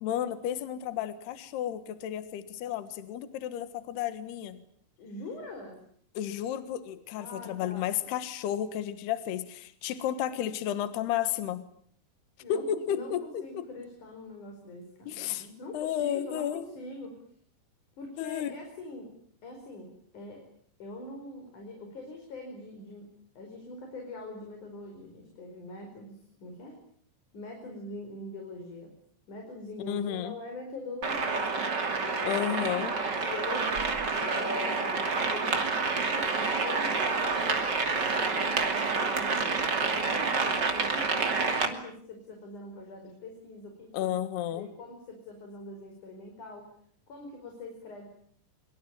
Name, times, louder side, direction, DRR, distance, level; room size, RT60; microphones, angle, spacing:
voice 1, 0.0-4.6 6.2-11.6 12.5-13.7 15.1-15.5 15.7-16.7 18.2-18.5 29.9-30.4 32.2-33.0 43.9-44.7, left 10 dB, 75° left, 11 dB, 3.4 m, -32 dB
voice 2, 5.0-5.8 7.2-8.1 12.4-17.2 18.0-19.1 19.4-20.4 20.8-26.8 27.3-28.9 29.3-32.4 32.9-33.8 34.2-44.1 44.4-46.7 47.1-48.1, left 2 dB, 45° left, 3 dB, 6.3 m, -43 dB
sound 1, 31.0-41.7, right 4 dB, 30° right, 2.6 m, -28 dB
25.5 x 24.0 x 8.9 m, 0.62 s
omnidirectional pair, 4.9 m